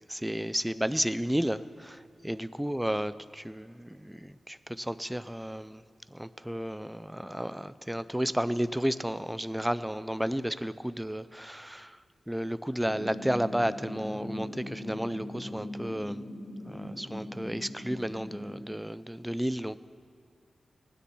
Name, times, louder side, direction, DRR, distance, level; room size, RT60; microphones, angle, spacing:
voice 1, 0.1-5.8 6.1-12.0 12.3-16.2 16.6-19.8, equal, 5° right, 14 dB, 0.3 m, -32 dB
sound 1, 12.9-18.7, left 1 dB, 45° left, 1.2 m, -40 dB
19.0 x 9.9 x 4.4 m, 2.5 s
wide cardioid pair, 160°, 0 cm